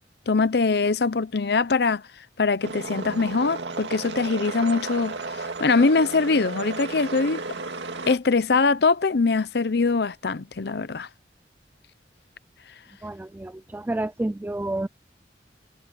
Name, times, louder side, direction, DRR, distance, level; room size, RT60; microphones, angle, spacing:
voice 1, 0.3-2.0 2.4-5.2 5.6-7.4 8.1-11.1, left 4 dB, 65° left, 0.7 m, -22 dB
sound 1, 2.6-8.1, right 3 dB, 90° right, 2.2 m, -34 dB
voice 2, 13.0-14.9, right 1 dB, 10° right, 0.3 m, -29 dB
head